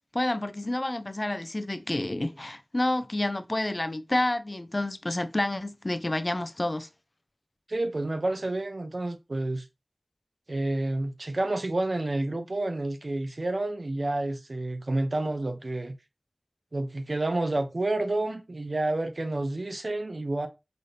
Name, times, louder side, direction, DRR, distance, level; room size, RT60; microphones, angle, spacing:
voice 1, 0.1-6.9, left 1 dB, 40° left, 0.4 m, -29 dB
voice 2, 7.7-9.6 10.5-15.9 16.7-20.5, right 2 dB, 65° right, 0.6 m, -29 dB
4.1 x 2.7 x 3.2 m
wide cardioid pair, 55°, 0 cm